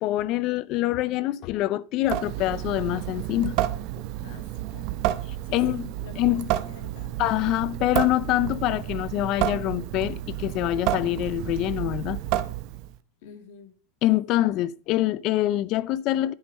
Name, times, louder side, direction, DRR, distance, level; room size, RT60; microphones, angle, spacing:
voice 1, 0.0-3.5 5.5-5.9 6.2-6.4 7.2-12.2 14.0-16.3, left 15 dB, 45° left, 0.5 m, -25 dB
Water tap faucet / Sink (filling or washing) / Drip, 2.0-13.0, right 14 dB, 55° right, 0.8 m, -30 dB
voice 2, 4.2-6.4 6.6-7.2 13.2-13.7, left 4 dB, 65° left, 2.2 m, -47 dB
10.0 x 5.3 x 5.4 m
supercardioid pair, 130°, 0 cm